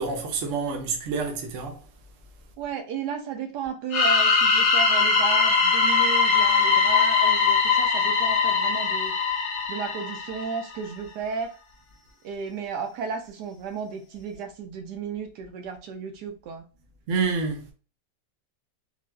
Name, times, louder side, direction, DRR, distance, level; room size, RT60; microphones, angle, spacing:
voice 1, 0.0-1.8 17.1-17.7, right 4 dB, 60° right, 0.9 m, -28 dB
voice 2, 2.6-9.1 9.7-11.5 12.2-16.6, right 5 dB, 75° right, 1.1 m, -34 dB
sound 1, 3.9-10.6, left 5 dB, 70° left, 1.1 m, -21 dB
3.8 x 2.4 x 2.2 m
omnidirectional pair, 1.8 m